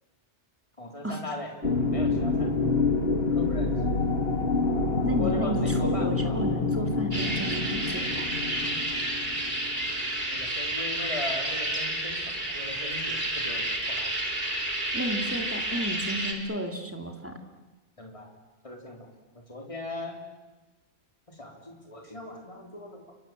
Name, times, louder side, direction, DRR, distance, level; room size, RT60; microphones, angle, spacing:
voice 1, 0.8-1.5 1.9-2.6 3.3-3.8 5.1-6.4 10.3-14.1 18.0-18.3 18.6-19.1 19.5-20.2 21.3-23.1, left 2 dB, 30° left, 1 dB, 3.6 m, -39 dB
sound 1, 1.6-10.1, left 3 dB, 60° left, 2.5 m, -27 dB
voice 2, 5.0-8.7 14.9-17.4, equal, 10° right, 4 dB, 2.8 m, -33 dB
sound 2, 7.1-16.3, right 1 dB, 45° right, 3.4 m, -30 dB
29.5 x 24.5 x 7.6 m, 1.2 s
omnidirectional pair, 1.2 m